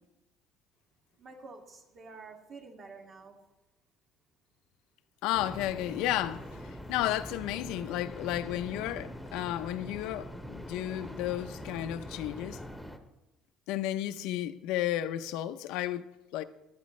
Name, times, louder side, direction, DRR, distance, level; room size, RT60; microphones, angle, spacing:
voice 1, 1.2-3.4, right 4 dB, 45° right, 2.1 m, -49 dB
voice 2, 5.2-12.6 13.7-16.4, left 13 dB, 85° left, 0.6 m, -33 dB
sound 1, 5.3-13.0, equal, ahead, 1.0 m, -43 dB
15.0 x 11.5 x 3.2 m
cardioid pair, 125°, 0 cm